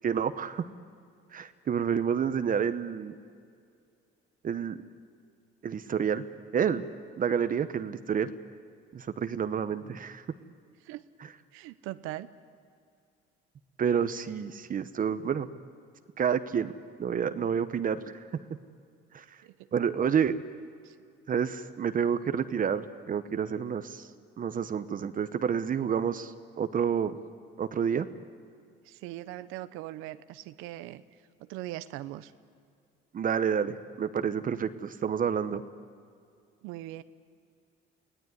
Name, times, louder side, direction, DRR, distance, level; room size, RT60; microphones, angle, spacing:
voice 1, 0.0-0.7 1.3-3.1 4.4-4.8 5.6-6.2 6.5-6.8 7.2-8.3 8.9-10.2 13.8-15.5 16.2-16.7 17.0-18.1 19.1-19.2 19.7-20.4 21.3-24.0 24.4-27.2 27.6-28.1 33.1-35.6, right 7 dB, 45° right, 11 dB, 1.0 m, -29 dB
voice 2, 11.5-12.3 19.4-19.5 20.8-20.9 28.9-31.0 31.4-32.3 36.6-37.0, right 15 dB, 90° right, 13 dB, 0.8 m, -40 dB
24.0 x 17.0 x 9.5 m, 2.3 s
cardioid pair, 90°, 20 cm